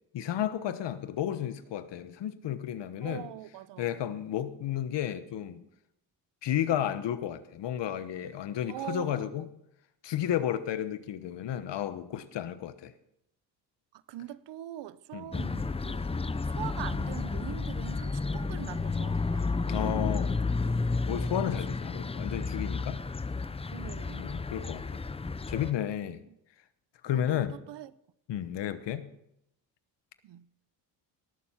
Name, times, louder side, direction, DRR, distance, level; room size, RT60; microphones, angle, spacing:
voice 1, 0.1-3.3 3.8-5.6 6.4-9.4 10.0-12.9 15.1-15.3 19.7-20.3 21.1-23.0 24.2-24.8 25.5-26.2 27.0-27.6 28.3-29.1, left 10 dB, 65° left, 1.2 m, -32 dB
voice 2, 3.0-4.0 8.7-9.5 13.9-19.5 20.3-20.9 21.7-21.8 23.7-24.4 25.2-25.4 27.1-27.9 28.4-28.6 30.2-30.4, right 13 dB, 65° right, 0.8 m, -43 dB
sound 1, 15.3-25.7, left 4 dB, 15° left, 0.6 m, -32 dB
18.5 x 7.1 x 5.8 m
cardioid pair, 85°, 47 cm